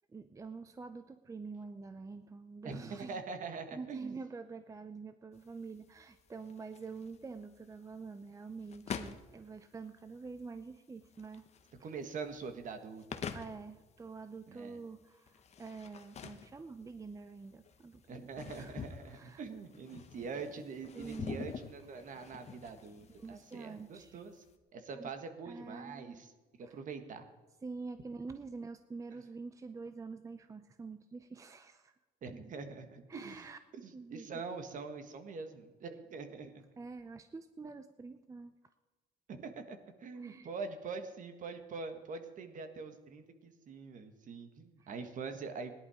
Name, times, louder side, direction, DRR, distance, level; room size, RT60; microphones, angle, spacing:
voice 1, 0.1-3.2 3.7-11.5 11.8-11.9 13.3-18.3 18.6-19.4 20.9-21.5 23.1-24.2 24.9-25.1 25.5-26.2 26.6-26.8 27.6-31.9 33.1-33.6 33.9-34.3 36.8-38.6 40.1-40.5 44.8-44.9, right 4 dB, 20° right, 10 dB, 0.6 m, -46 dB
voice 2, 2.6-4.2 11.8-13.2 14.5-14.8 18.1-24.4 24.7-26.3 26.7-27.2 32.2-33.4 33.8-36.6 39.3-45.7, right 4 dB, 50° right, 7 dB, 1.6 m, -44 dB
sound 1, 5.3-24.5, left 6 dB, 40° left, 1.0 m, -48 dB
17.0 x 11.0 x 5.0 m, 1.3 s
cardioid pair, 110°, 17 cm